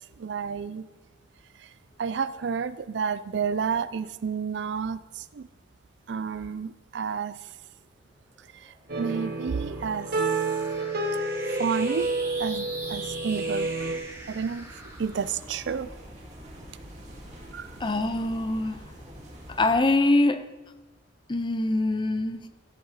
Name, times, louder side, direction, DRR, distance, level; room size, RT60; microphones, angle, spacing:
voice 1, 0.2-0.8 1.6-1.7 2.0-5.5 6.1-7.4 8.5-10.1 11.5-12.1 12.4-13.7 14.3-15.9 17.5-17.7, right 6 dB, 70° right, 16 dB, 0.4 m, -31 dB
sound 1, 8.4-17.0, right 2 dB, 15° right, 1.7 m, -42 dB
sound 2, 8.9-14.0, right 3 dB, 55° right, 1.1 m, -29 dB
sound 3, 11.5-19.8, equal, 40° right, 2.3 m, -47 dB
voice 2, 17.8-18.8 19.5-20.5 21.3-22.5, left 2 dB, 25° left, 10 dB, 0.5 m, -24 dB
14.5 x 6.6 x 4.1 m, 1.2 s
head